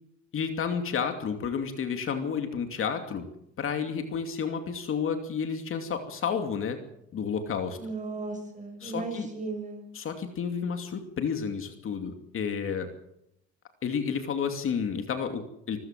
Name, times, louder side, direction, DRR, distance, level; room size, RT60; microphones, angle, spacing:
voice 1, 0.3-3.2 3.6-6.8 7.1-7.8 8.8-9.3 9.9-12.9 13.8-15.8, left 6 dB, 45° left, 6 dB, 2.6 m, -31 dB
voice 2, 7.8-9.8, right 3 dB, 25° right, 5 dB, 6.5 m, -36 dB
25.5 x 15.0 x 7.5 m, 0.80 s
cardioid pair, 130°, 29 cm